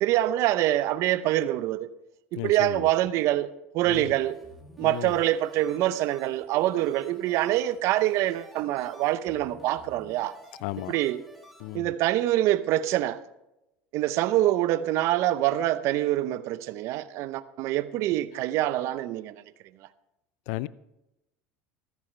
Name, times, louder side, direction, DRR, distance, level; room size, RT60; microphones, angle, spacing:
voice 1, 0.0-1.9 2.3-3.5 3.7-4.4 4.8-10.4 10.9-11.2 11.7-13.2 13.9-19.4, right 14 dB, 60° right, 0.7 m, -25 dB
voice 2, 2.4-2.9 3.8-4.1 4.8-5.1 10.6-11.0 11.6-11.9 20.5-20.7, left 19 dB, 70° left, 0.5 m, -34 dB
sound 1, 3.9-11.8, right 1 dB, ahead, 2.9 m, -52 dB
14.5 x 14.0 x 3.3 m
supercardioid pair, 105°, 6 cm